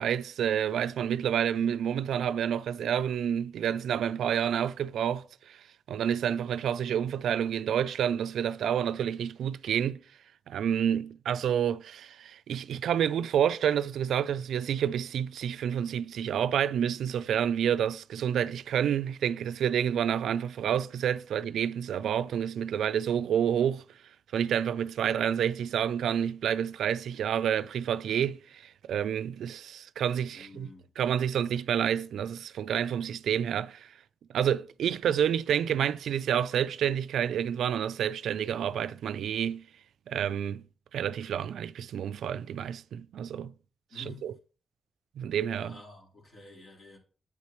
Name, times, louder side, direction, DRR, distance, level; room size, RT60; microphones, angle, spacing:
voice 1, 0.0-5.6 5.9-10.0 10.5-23.8 24.3-30.7 31.0-33.9 34.3-39.7 40.1-40.6 40.9-43.5 44.0-44.3 45.2-45.8, right 9 dB, 85° right, 0.3 m, -29 dB
voice 2, 30.3-30.9 43.9-44.2 45.5-47.0, left 2 dB, 65° left, 3.7 m, -49 dB
8.4 x 8.2 x 3.0 m
cardioid pair, 55°, 0 cm